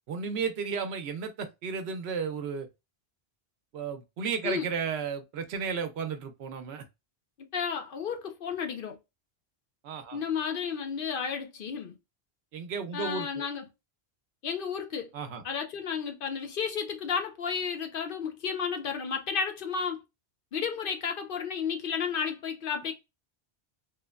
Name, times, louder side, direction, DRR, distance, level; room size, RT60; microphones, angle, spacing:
voice 1, 0.1-2.7 3.7-6.8 9.8-10.2 12.5-13.4 15.1-15.4, right 6 dB, 75° right, 0.8 m, -33 dB
voice 2, 7.5-9.0 10.1-12.0 12.9-13.7 14.4-15.1 15.4-20.0 20.5-22.9, left 6 dB, 60° left, 0.7 m, -32 dB
3.1 x 2.1 x 2.3 m
omnidirectional pair, 1.1 m